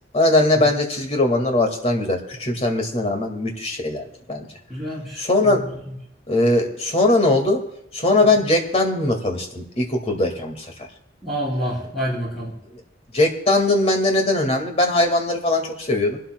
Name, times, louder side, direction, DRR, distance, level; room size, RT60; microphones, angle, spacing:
voice 1, 0.1-4.5 5.2-5.6 6.3-7.6 7.9-10.9 13.1-16.2, left 2 dB, 35° left, 3 dB, 2.0 m, -20 dB
voice 2, 4.7-5.6 8.2-8.3 11.2-12.5, equal, ahead, -6 dB, 5.2 m, -28 dB
26.0 x 12.0 x 2.3 m, 0.82 s
head